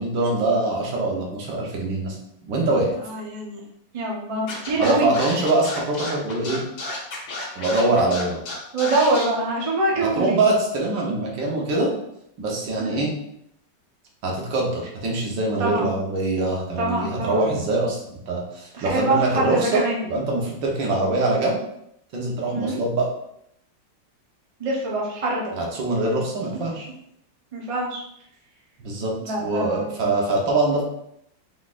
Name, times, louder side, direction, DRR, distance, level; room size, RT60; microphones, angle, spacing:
voice 1, 0.0-2.2 2.5-2.9 4.8-6.6 7.6-8.4 10.0-11.9 12.4-13.1 14.2-21.5 22.1-23.1 25.5-26.9 28.8-29.1 29.4-30.8, right 2 dB, 75° right, -2 dB, 1.7 m, -23 dB
voice 2, 3.0-3.6 3.9-5.2 8.7-10.5 12.8-13.0 15.6-15.9 16.8-17.5 18.7-20.0 22.5-22.8 24.6-25.5 27.5-28.0 29.2-30.0, right 2 dB, 35° right, -3 dB, 0.5 m, -24 dB
Scratching (performance technique), 4.5-9.2, left 2 dB, 70° left, 1.7 m, -32 dB
4.8 x 4.0 x 2.5 m, 0.75 s
omnidirectional pair, 2.1 m